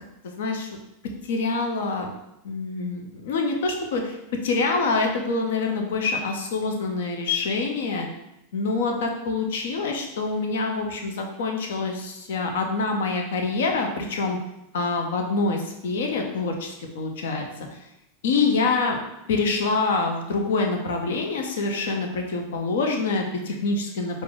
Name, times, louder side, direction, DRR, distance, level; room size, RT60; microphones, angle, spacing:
voice 1, 0.2-0.7 1.3-2.1 2.4-4.2 4.4-8.1 8.5-14.4 14.7-17.5 18.2-19.0 19.3-24.2, left 3 dB, 75° left, 2 dB, 0.7 m, -26 dB
4.5 x 2.6 x 3.9 m, 0.86 s
hypercardioid pair, 100°, 0 cm